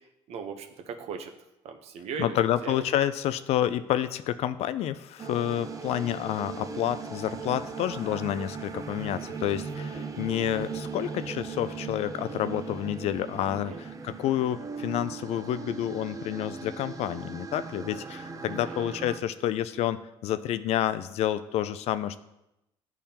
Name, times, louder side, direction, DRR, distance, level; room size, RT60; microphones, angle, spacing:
voice 1, 0.3-1.3 1.6-2.4 2.6-2.8 13.7-13.8 18.4-18.9, right 6 dB, 70° right, 5 dB, 0.7 m, -38 dB
voice 2, 2.2-22.2, left 11 dB, 70° left, 13 dB, 0.4 m, -29 dB
sound 1, 5.2-19.2, right 5 dB, 30° right, 0.5 m, -38 dB
10.0 x 3.5 x 2.8 m, 0.89 s
cardioid pair, 90°, 11 cm